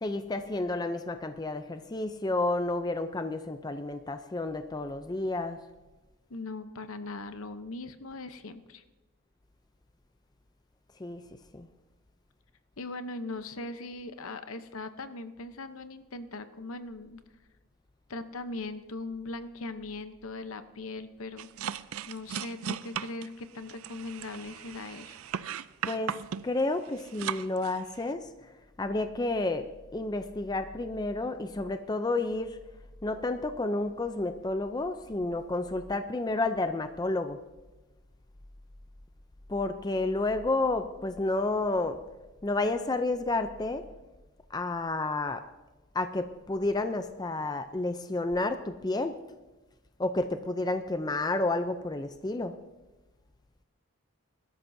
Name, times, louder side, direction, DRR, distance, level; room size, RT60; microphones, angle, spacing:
voice 1, 0.0-5.6 11.0-11.2 11.5-11.7 25.8-28.3 28.8-29.7 29.9-32.6 33.0-37.4 39.5-42.0 42.4-43.8 44.5-45.4 45.9-49.2 50.0-52.5, left 2 dB, 20° left, 9 dB, 0.4 m, -30 dB
voice 2, 6.3-8.8 12.8-17.2 18.1-21.5 22.1-25.2, left 2 dB, 70° left, 10 dB, 0.8 m, -40 dB
sound 1, 21.4-28.1, right 8 dB, 70° right, 0.4 m, -37 dB
21.5 x 13.0 x 2.7 m, 1.1 s
head